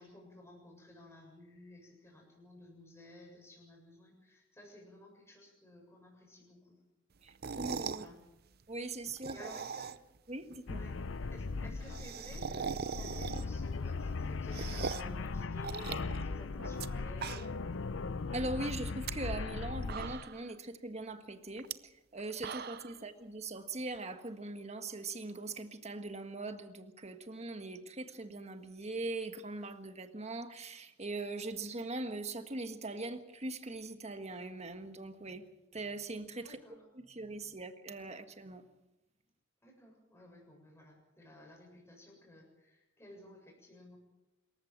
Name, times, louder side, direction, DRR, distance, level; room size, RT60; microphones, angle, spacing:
voice 1, 0.0-6.8 7.5-8.2 9.3-9.9 10.7-11.0 11.3-17.6 22.9-23.1 36.4-36.8 39.6-44.0, left 1 dB, 15° left, 7.4 m, -54 dB
voice 2, 7.2-8.1 8.7-9.5 10.3-10.8 18.3-35.4 35.7-36.6 36.9-38.6, right 2 dB, 35° right, 1.6 m, -41 dB
sound 1, 7.3-8.1 9.1-10.2 10.5-10.6 10.8-10.9 11.1-11.2 11.5-13.7 14.1-15.2 15.6-16.9 17.1-17.7 18.1-18.2 18.8-19.1 19.6-19.7 19.9-20.5 21.6-21.7 22.2-23.0, right 6 dB, 50° right, 0.7 m, -40 dB
sound 2, 10.7-20.2, left 4 dB, 70° left, 0.6 m, -38 dB
26.5 x 14.5 x 7.3 m
head